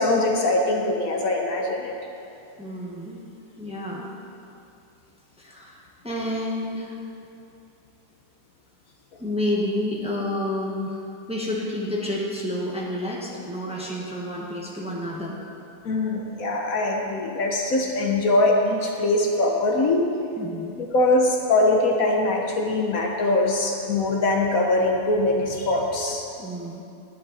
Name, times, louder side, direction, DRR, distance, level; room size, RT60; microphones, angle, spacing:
voice 1, 0.0-1.9 15.8-20.0 20.8-26.2, left 2 dB, 60° left, 1 dB, 1.3 m, -22 dB
voice 2, 2.6-3.2 3.6-4.1 5.4-7.0 9.2-15.4 20.4-20.8 26.4-26.8, left 1 dB, 5° right, -4 dB, 1.3 m, -30 dB
11.0 x 11.0 x 4.2 m, 2.6 s
omnidirectional pair, 1.7 m